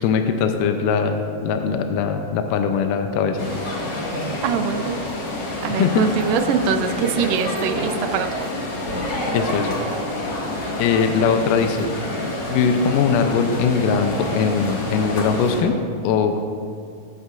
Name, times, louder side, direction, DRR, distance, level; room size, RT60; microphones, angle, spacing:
voice 1, 0.0-3.5 5.7-6.1 9.3-9.8 10.8-11.9 12.5-15.8 16.0-16.4, left 6 dB, 80° left, 6 dB, 2.1 m, -21 dB
sound 1, 3.4-15.6, left 1 dB, 50° left, 2.4 m, -28 dB
voice 2, 4.4-5.0 5.6-8.5, right 7 dB, 80° right, 9 dB, 2.1 m, -23 dB
19.0 x 8.3 x 2.5 m, 2.3 s
omnidirectional pair, 4.0 m